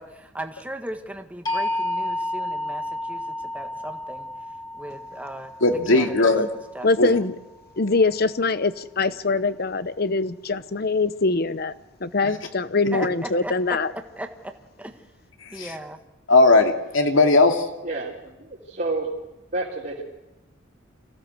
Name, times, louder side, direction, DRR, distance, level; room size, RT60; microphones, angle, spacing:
voice 1, 0.0-4.3 4.7-5.5 5.9-6.3 6.7-7.1 12.9-13.8 14.2-14.9 15.5-16.0, right 1 dB, 5° right, 5 dB, 1.5 m, -37 dB
sound 1, 1.5-7.4, left 1 dB, 20° left, 2.7 m, -31 dB
voice 2, 5.6-6.5 7.0-7.1 15.4-15.7 16.3-17.7, left 2 dB, 85° left, 4 dB, 2.6 m, -18 dB
voice 3, 6.8-7.3 7.8-11.7 12.0-13.9, left 3 dB, 50° left, 14 dB, 0.9 m, -23 dB
voice 4, 17.8-19.1 19.5-20.0, right 2 dB, 45° right, -6 dB, 3.4 m, -29 dB
26.0 x 16.0 x 8.0 m, 1.0 s
head